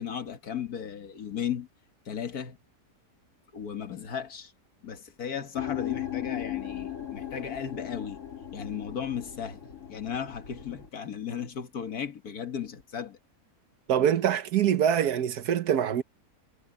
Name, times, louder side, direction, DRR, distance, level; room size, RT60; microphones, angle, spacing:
voice 1, 0.0-1.7 2.1-2.6 3.5-4.5 4.8-8.2 8.5-13.2, left 8 dB, 70° left, 2.1 m, -35 dB
sound 1, 5.5-10.9, left 12 dB, 55° left, 3.1 m, -37 dB
voice 2, 13.9-16.0, right 9 dB, 85° right, 1.6 m, -24 dB
omnidirectional pair, 1.6 m